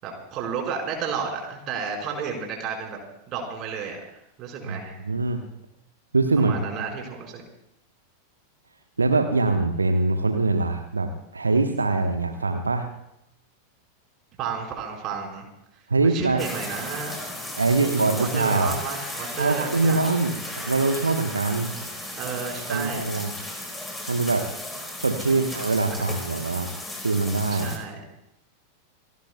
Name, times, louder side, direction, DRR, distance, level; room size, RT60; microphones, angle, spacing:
voice 1, 0.0-3.0 3.3-4.0 4.4-5.0 6.4-7.4 14.4-15.5 16.0-17.2 17.8-20.0 22.1-23.1 25.3-25.4 25.9-26.1 27.5-28.0, right 6 dB, 35° right, 0 dB, 4.7 m, -32 dB
voice 2, 5.0-5.4 6.1-6.5 9.0-12.9 15.9-16.4 17.6-18.8 19.4-20.4 20.6-21.7 22.7-23.3 24.1-24.5 25.0-26.7 27.0-27.8, right 3 dB, 75° right, 5 dB, 1.1 m, -23 dB
sound 1, 16.4-27.8, left 1 dB, 5° left, 4.2 m, -35 dB
29.0 x 18.5 x 2.3 m, 0.82 s
figure-of-eight pair, 90°, 0 cm